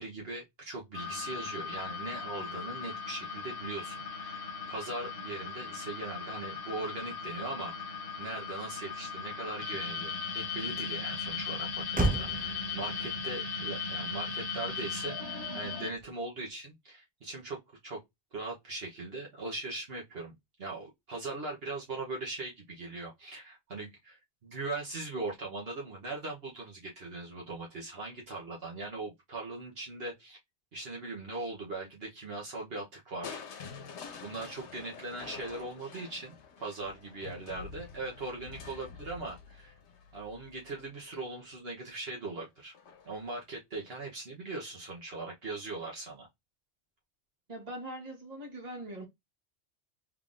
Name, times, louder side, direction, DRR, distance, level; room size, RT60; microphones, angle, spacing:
voice 1, 0.0-18.0 18.3-20.3 20.6-30.4 30.7-33.4 34.2-39.8 40.1-42.7 43.0-46.3, right 2 dB, 65° right, 1.2 m, -40 dB
sound 1, 0.9-15.9, left 5 dB, 55° left, 1.2 m, -38 dB
Motor vehicle (road), 9.0-16.5, right 2 dB, 15° right, 0.4 m, -39 dB
Crushing, 33.2-41.2 42.7-43.3 43.7-43.8, left 6 dB, 90° left, 1.1 m, -47 dB
voice 2, 47.5-49.1, right 1 dB, 40° right, 1.3 m, -41 dB
3.7 x 3.5 x 2.5 m
omnidirectional pair, 1.1 m